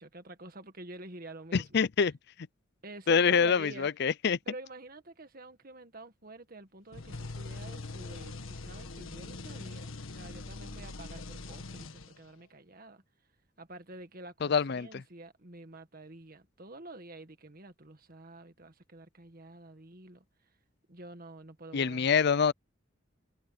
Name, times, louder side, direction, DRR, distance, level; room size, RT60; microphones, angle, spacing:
voice 1, 0.0-1.8 2.8-3.9 4.5-13.0 13.6-20.2 20.9-22.4, right 2 dB, 45° right, 1.9 m, -48 dB
voice 2, 1.5-2.1 3.1-4.4 14.4-15.0 21.7-22.5, left 6 dB, 55° left, 0.5 m, -26 dB
sound 1, 6.9-12.4, left 3 dB, 90° left, 1.6 m, -42 dB
head